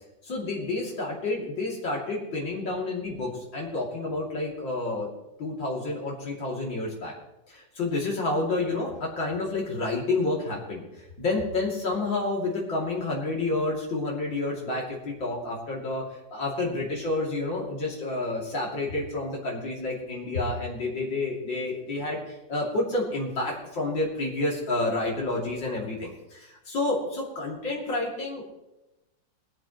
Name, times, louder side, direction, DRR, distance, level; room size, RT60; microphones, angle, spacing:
voice 1, 0.2-5.1 5.4-7.1 7.5-28.5, left 2 dB, 80° left, -3 dB, 3.6 m, -29 dB
20.5 x 13.5 x 3.1 m, 0.94 s
omnidirectional pair, 2.0 m